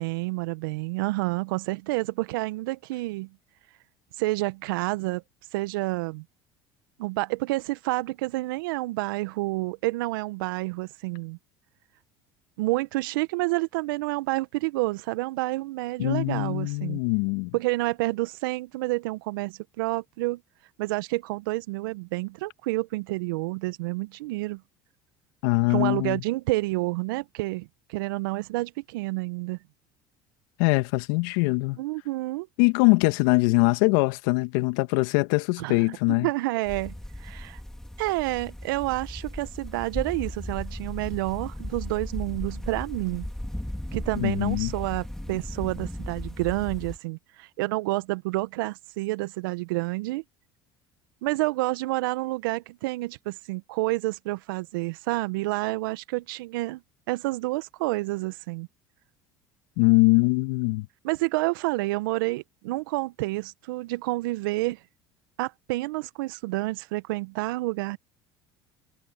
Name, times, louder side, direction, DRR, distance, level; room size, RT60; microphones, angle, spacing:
voice 1, 0.0-3.3 4.2-5.2 5.5-6.2 7.0-11.4 12.6-17.0 17.5-20.4 20.8-24.6 25.7-29.6 31.8-32.5 35.6-36.9 37.2-37.6 38.0-43.3 43.9-50.2 51.2-56.8 57.1-58.7 61.0-64.8 65.4-68.0, right 21 dB, 75° right, 1.4 m, -29 dB
voice 2, 16.0-17.5 25.4-26.2 30.6-31.8 32.6-36.3 44.1-44.7 59.8-60.9, left 27 dB, 70° left, 2.2 m, -22 dB
sound 1, 36.6-47.0, left 1 dB, 5° left, 4.2 m, -36 dB
hypercardioid pair, 70°, 11 cm